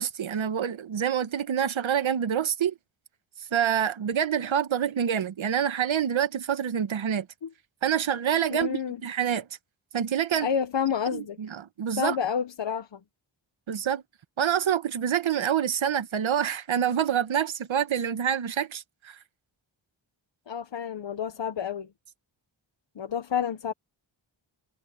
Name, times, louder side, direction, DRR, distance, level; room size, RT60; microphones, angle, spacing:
voice 1, 0.0-2.7 3.5-7.3 7.8-9.5 9.9-10.5 11.1-12.2 13.7-14.0 14.4-19.2, right 9 dB, 80° right, 1.2 m, -27 dB
voice 2, 8.5-9.0 10.4-11.4 12.0-13.0 20.5-21.9 22.9-23.7, left 8 dB, 65° left, 1.2 m, -29 dB
wide cardioid pair, 150°, 47 cm